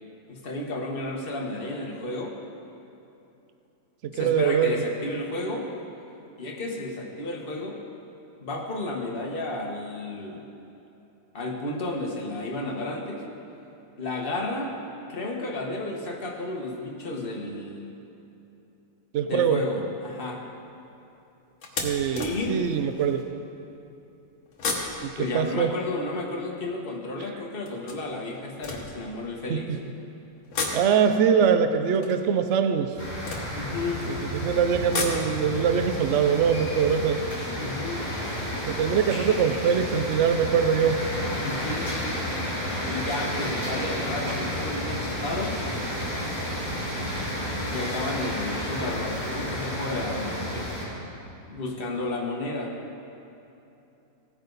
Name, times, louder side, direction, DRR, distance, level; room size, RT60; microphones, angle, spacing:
voice 1, 0.3-2.3 4.1-5.7 6.4-7.8 8.4-10.4 11.3-13.2 14.0-14.7 15.1-18.0 19.2-20.4 22.2-22.6 25.2-29.7 33.5-34.0 37.6-38.1 41.4-41.9 42.9-45.6 47.7-50.7 51.5-52.7, left 2 dB, 35° left, -1 dB, 1.4 m, -32 dB
voice 2, 4.0-4.7 19.1-19.6 21.8-23.3 25.0-25.7 29.5-29.6 30.7-32.9 34.4-37.2 38.7-41.0, right 7 dB, 75° right, 8 dB, 0.6 m, -23 dB
sound 1, 19.2-19.6 20.1-20.3 20.7-20.8 21.6-23.3 24.5-26.8 27.7-29.6 30.4-34.1 34.6-37.7 37.9-38.0 38.3-38.4, left 3 dB, 50° left, 1.7 m, -36 dB
sound 2, 33.0-50.8, equal, 25° right, 3.6 m, -31 dB
17.0 x 9.5 x 4.0 m, 2.9 s
omnidirectional pair, 2.0 m